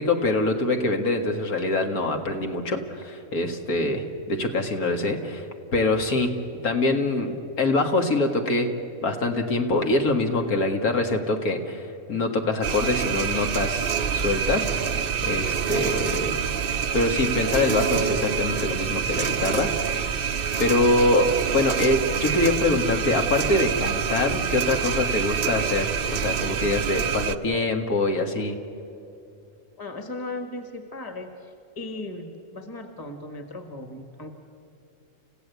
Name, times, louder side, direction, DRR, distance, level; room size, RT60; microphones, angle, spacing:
voice 1, 0.0-6.4 6.6-8.7 9.0-14.7 15.2-16.4 16.9-20.0 20.6-28.6, left 2 dB, 80° left, 4 dB, 2.3 m, -24 dB
sound 1, 12.6-27.4, right 7 dB, 50° right, 0.7 m, -26 dB
voice 2, 29.8-34.3, left 2 dB, 15° left, 6 dB, 1.5 m, -37 dB
29.5 x 16.0 x 8.2 m, 2.8 s
omnidirectional pair, 1.5 m